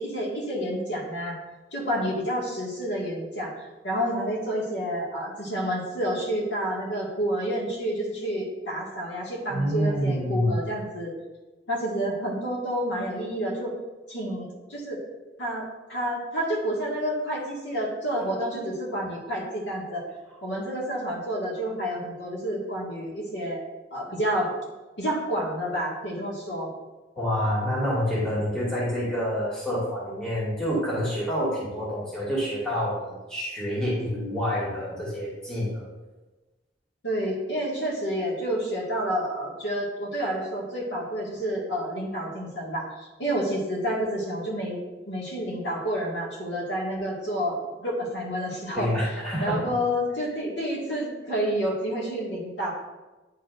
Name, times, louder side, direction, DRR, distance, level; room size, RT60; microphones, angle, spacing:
voice 1, 0.0-1.4 1.7-11.1 11.7-13.7 14.1-15.0 15.4-20.0 20.4-23.6 23.9-24.5 25.0-26.7 37.0-44.8 45.1-48.9 49.4-52.7, equal, 85° left, -3 dB, 1.9 m, -29 dB
voice 2, 9.5-10.5 27.2-35.9 48.7-49.6, equal, 5° left, -8 dB, 2.1 m, -27 dB
9.8 x 4.4 x 2.6 m, 1.2 s
head